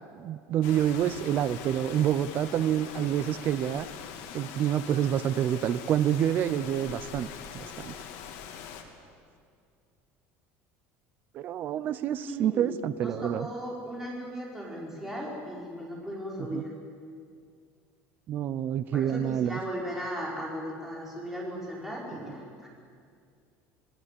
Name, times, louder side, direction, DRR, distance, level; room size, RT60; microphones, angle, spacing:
voice 1, 0.1-3.9 4.3-7.3 7.5-7.9 11.3-13.5 16.5-16.6 18.3-19.6, right 10 dB, 35° right, 15 dB, 0.6 m, -27 dB
Rain, 0.6-8.8, left 8 dB, 65° left, 2.8 m, -42 dB
voice 2, 12.3-12.6 13.0-16.7 18.9-22.7, equal, 5° right, -3 dB, 4.9 m, -37 dB
26.5 x 18.5 x 8.4 m, 2.2 s
cardioid pair, 175°, 6 cm